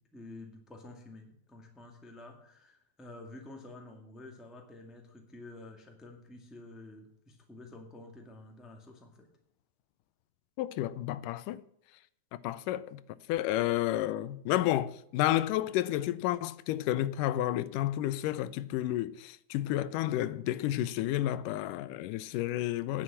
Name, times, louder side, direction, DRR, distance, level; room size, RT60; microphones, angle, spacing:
voice 1, 0.0-9.3, left 2 dB, ahead, 1.1 m, -50 dB
voice 2, 10.6-11.6 12.4-13.0 13.3-23.0, left 14 dB, 85° left, 2.2 m, -31 dB
10.0 x 7.9 x 7.5 m
omnidirectional pair, 3.7 m